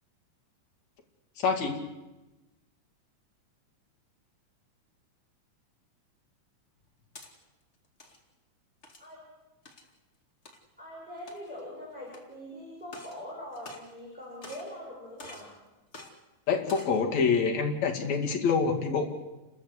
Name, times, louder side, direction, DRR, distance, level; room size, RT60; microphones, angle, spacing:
voice 1, 1.4-1.8 16.5-19.1, left 5 dB, 60° left, 1 dB, 3.5 m, -26 dB
sound 1, 6.8-7.3 7.8-8.2 8.8-9.1 9.7-9.9 10.5-10.6 11.2-11.6 12.1-12.2 12.8-13.2 13.5-14.1 14.4-14.8 15.2-15.5 15.9-16.1 16.6-17.0, left 2 dB, 25° left, 2.2 m, -47 dB
voice 2, 10.8-15.5, left 1 dB, ahead, -6 dB, 7.2 m, -43 dB
30.0 x 13.5 x 8.1 m, 1.1 s
omnidirectional pair, 3.6 m